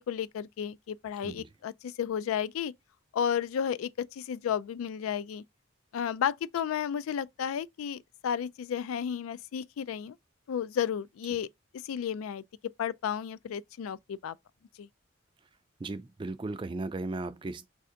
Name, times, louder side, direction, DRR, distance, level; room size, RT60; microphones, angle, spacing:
voice 1, 0.0-2.7 3.1-5.4 5.9-10.2 10.5-11.5 11.8-12.4 12.8-14.4 14.8-14.9, left 8 dB, 90° left, 0.3 m, -32 dB
voice 2, 15.8-17.7, right 2 dB, 25° right, 0.3 m, -36 dB
3.3 x 2.7 x 3.6 m
head